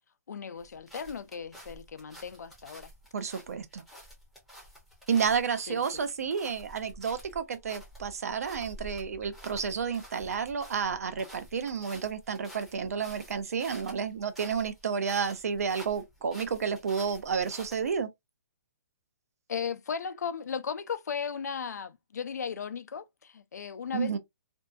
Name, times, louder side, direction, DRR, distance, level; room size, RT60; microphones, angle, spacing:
voice 1, 0.3-2.9 5.7-5.9 19.5-24.2, left 6 dB, 90° left, 0.4 m, -36 dB
sound 1, 0.6-18.0, equal, ahead, 0.6 m, -50 dB
voice 2, 3.1-3.8 5.1-18.1 23.9-24.2, right 6 dB, 65° right, 0.5 m, -31 dB
2.6 x 2.3 x 2.5 m
hypercardioid pair, 170°, 9 cm